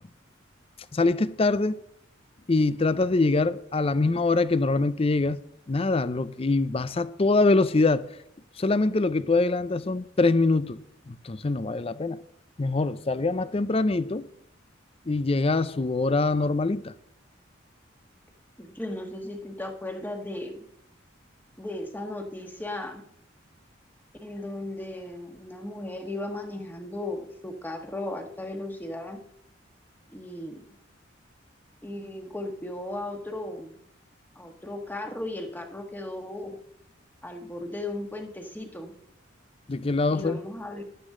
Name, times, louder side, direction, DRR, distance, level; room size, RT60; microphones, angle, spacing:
voice 1, 0.9-1.8 2.5-5.4 5.7-8.1 8.6-10.8 11.1-12.2 12.6-14.3 15.1-16.9 39.7-40.4, left 3 dB, 30° left, 0.5 m, -24 dB
voice 2, 18.6-20.6 21.6-23.0 24.2-29.2 30.1-30.6 31.8-33.7 34.3-36.6 37.2-38.9 40.1-40.8, left 1 dB, 10° left, 1.5 m, -36 dB
15.0 x 11.5 x 3.8 m
head